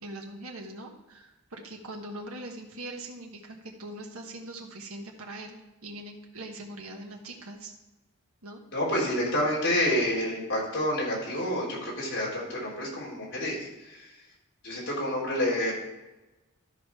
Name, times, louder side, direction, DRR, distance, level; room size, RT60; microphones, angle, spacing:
voice 1, 0.0-7.7 8.4-8.6, right 1 dB, 70° right, 0 dB, 1.4 m, -42 dB
voice 2, 8.7-14.1 14.6-15.7, left 1 dB, 55° left, -5 dB, 3.8 m, -28 dB
13.0 x 5.1 x 4.7 m, 1.0 s
head